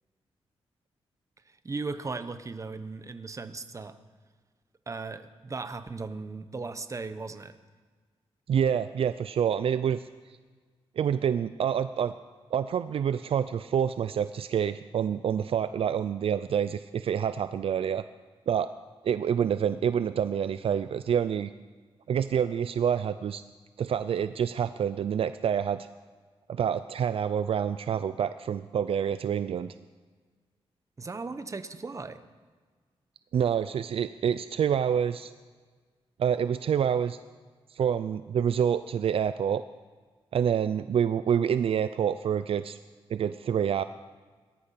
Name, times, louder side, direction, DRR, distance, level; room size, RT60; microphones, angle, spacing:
voice 1, 1.6-4.0 4.9-7.6 31.0-32.2, right 3 dB, 30° right, 10 dB, 1.1 m, -37 dB
voice 2, 8.5-10.0 11.0-12.1 12.5-18.0 18.5-18.7 19.0-21.5 22.1-23.4 23.8-25.9 26.5-29.7 33.3-35.3 36.2-37.2 37.7-39.6 40.3-42.8 43.1-43.8, right 8 dB, 65° right, 13 dB, 0.5 m, -27 dB
19.0 x 12.0 x 5.9 m, 1.5 s
cardioid pair, 90°, 10 cm